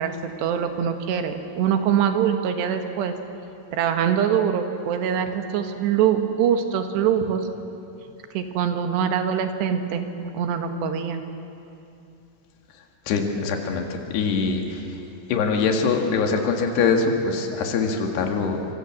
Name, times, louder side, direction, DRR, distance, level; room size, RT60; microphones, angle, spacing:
voice 1, 0.0-3.1 3.7-7.5 8.4-11.2, right 8 dB, 90° right, 6 dB, 3.7 m, -23 dB
voice 2, 13.1-15.0 15.3-18.7, left 4 dB, 80° left, 3 dB, 4.0 m, -23 dB
27.0 x 25.0 x 7.6 m, 2.7 s
omnidirectional pair, 4.7 m